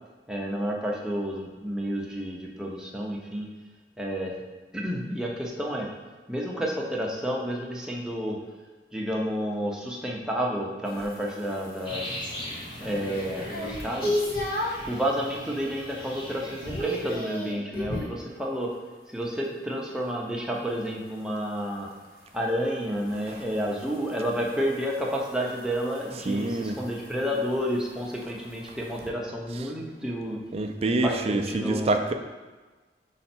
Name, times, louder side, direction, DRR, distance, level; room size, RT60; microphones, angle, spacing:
voice 1, 0.3-3.5 4.0-4.4 4.7-5.9 6.3-8.4 8.9-12.3 12.8-14.2 14.9-18.7 19.1-21.9 22.3-30.4 30.8-32.0, equal, 5° right, -2 dB, 0.8 m, -30 dB
sound 1, 10.8-14.9 15.4-15.8 16.1-18.2 20.7-29.1, left 1 dB, 55° left, 1.1 m, -36 dB
sound 2, 11.9-17.1, left 1 dB, 25° left, 1.1 m, -40 dB
voice 2, 26.3-26.8 30.5-32.1, right 2 dB, 35° right, 5 dB, 0.4 m, -26 dB
5.5 x 4.1 x 4.4 m, 1.3 s
head